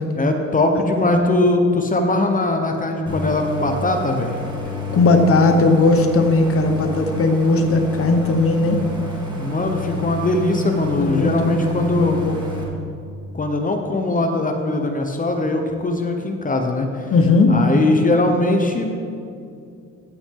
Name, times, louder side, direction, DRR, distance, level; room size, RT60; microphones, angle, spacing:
voice 1, 0.2-4.4 9.4-12.2 13.3-16.9 17.5-18.9, left 2 dB, 25° left, 4 dB, 0.9 m, -20 dB
Idling, 3.1-12.6, equal, 15° right, 2.3 m, -30 dB
voice 2, 4.9-8.8 11.1-11.5 11.8-12.4 17.1-17.6, left 3 dB, 45° left, 5 dB, 1.1 m, -17 dB
15.5 x 6.1 x 3.7 m, 2.5 s
cardioid pair, 90°, 30 cm